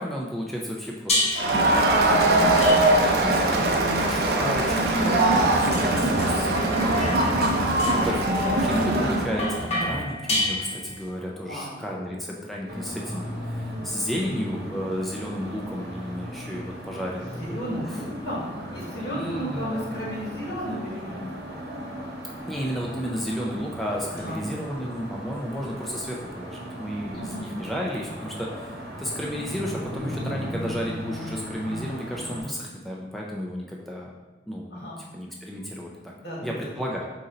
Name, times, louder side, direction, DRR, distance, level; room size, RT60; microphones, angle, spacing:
voice 1, 0.0-1.7 3.1-17.3 17.6-18.0 19.1-19.7 22.5-34.1 34.5-34.9 35.1-36.1 36.4-37.1, equal, ahead, -3 dB, 0.3 m, -33 dB
sound 1, 1.1-1.6 2.6-3.3 4.2-11.1, left 1 dB, 35° left, 0.8 m, -30 dB
Crowd, 1.4-9.3, right 2 dB, 60° right, 0.5 m, -21 dB
voice 2, 2.0-2.5 2.8-3.5 5.2-5.5 9.6-9.9 11.4-11.8 13.0-13.2 17.4-18.4 18.7-21.2 24.1-24.4 27.1-27.5 34.7-35.0 36.2-36.7, equal, 80° left, -5 dB, 1.4 m, -34 dB
sound 2, 12.7-32.4, equal, 80° right, 1.0 m, -37 dB
4.1 x 2.5 x 3.8 m, 1.2 s
head